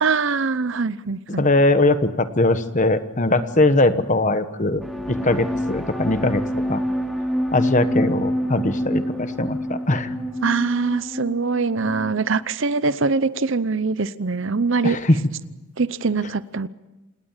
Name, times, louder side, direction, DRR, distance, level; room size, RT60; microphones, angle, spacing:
voice 1, 0.0-1.5 10.4-15.0 15.8-16.7, right 4 dB, 55° right, 16 dB, 0.7 m, -23 dB
voice 2, 1.4-4.8 5.1-6.4 6.7-6.8 7.5-10.1 14.8-15.2, left 2 dB, 35° left, 10 dB, 1.2 m, -20 dB
sound 1, 4.7-12.3, equal, ahead, 3.0 m, -27 dB
28.0 x 18.5 x 7.4 m, 1.0 s
head